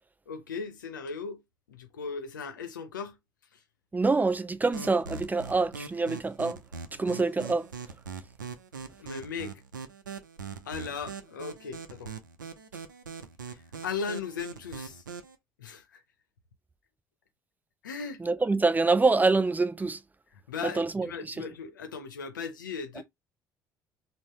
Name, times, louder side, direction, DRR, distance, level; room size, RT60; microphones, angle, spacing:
voice 1, 0.3-1.4 1.7-3.2 3.5-3.6 9.0-9.6 10.6-12.2 13.5-15.0 15.6-16.0 17.8-18.2 20.3-23.0, left 5 dB, 85° left, 0.7 m, -37 dB
voice 2, 3.9-6.6 7.0-7.7 18.2-20.0 20.8-21.1, right 3 dB, 15° right, 0.4 m, -25 dB
sound 1, 4.7-15.3, right 5 dB, 85° right, 0.4 m, -42 dB
3.8 x 2.0 x 3.0 m
figure-of-eight pair, 55°, 10 cm